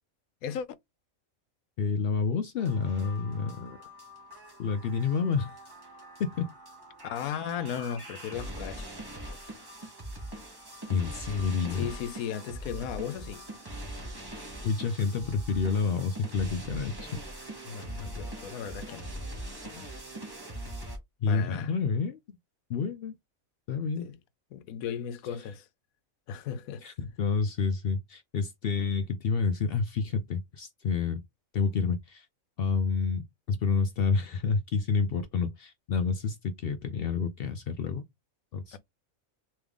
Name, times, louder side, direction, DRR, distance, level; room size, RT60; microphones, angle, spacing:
voice 1, 1.8-3.8 4.6-5.6 6.2-6.5 10.9-11.9 14.6-17.2 21.2-22.2 22.7-23.1 23.7-24.1 26.8-31.2 31.5-32.3 32.6-38.0 38.5-38.8, left 5 dB, 65° left, 0.5 m, -29 dB
sound 1, 2.6-21.0, right 1 dB, 20° right, 1.1 m, -42 dB
voice 2, 7.0-8.9 11.7-13.5 17.6-19.1 19.6-19.9 21.3-21.7 24.0-24.2 24.5-25.7 26.3-26.9 38.7-38.8, left 8 dB, 85° left, 1.0 m, -36 dB
3.5 x 3.2 x 3.4 m
omnidirectional pair, 1.4 m